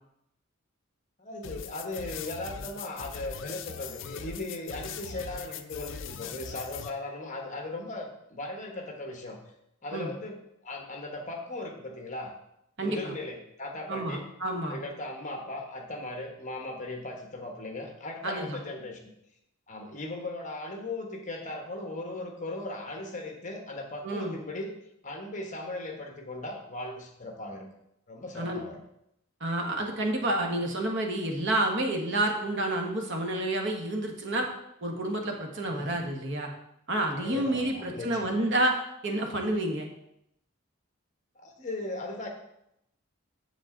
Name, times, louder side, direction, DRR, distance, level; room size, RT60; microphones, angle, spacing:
voice 1, 1.2-9.4 9.8-12.3 12.8-14.2 14.7-19.1 19.7-24.7 25.0-27.7 28.1-28.8 35.7-36.0 37.1-38.3 41.3-42.3, left 2 dB, 35° left, 3 dB, 1.1 m, -38 dB
sound 1, 1.4-6.9, left 7 dB, 60° left, 0.5 m, -40 dB
voice 2, 12.8-13.1 13.9-14.8 18.2-18.6 24.0-24.3 28.3-28.6 29.4-34.5 34.8-36.5 36.9-38.7 39.0-39.9, right 1 dB, 55° right, 2 dB, 1.4 m, -29 dB
7.7 x 7.5 x 3.8 m, 0.79 s
head